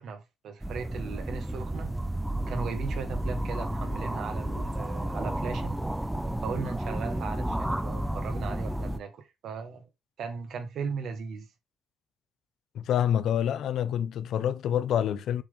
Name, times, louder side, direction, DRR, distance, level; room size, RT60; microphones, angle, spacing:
voice 1, 0.0-1.9 2.5-5.8 6.4-9.8 10.2-11.5, right 5 dB, 70° right, 1.6 m, -37 dB
sound 1, 0.6-9.0, right 1 dB, 5° right, 0.6 m, -32 dB
voice 2, 12.7-15.4, left 9 dB, 75° left, 0.7 m, -27 dB
7.1 x 3.6 x 3.6 m
cardioid pair, 90°, 0 cm